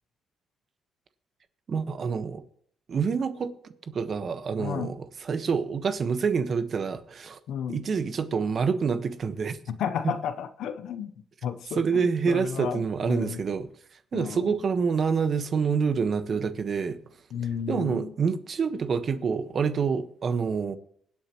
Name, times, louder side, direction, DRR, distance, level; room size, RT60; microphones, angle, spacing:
voice 1, 1.7-2.4 2.9-3.5 3.9-7.4 7.7-9.6 10.0-10.1 11.8-13.7 14.1-17.0 17.7-20.8, right 5 dB, 50° right, 1.2 m, -27 dB
voice 2, 4.6-4.9 7.5-7.8 9.7-11.1 11.4-13.4 14.1-14.6 17.3-18.1, left 8 dB, 75° left, 0.8 m, -33 dB
23.0 x 8.3 x 3.0 m
cardioid pair, 90°, 0 cm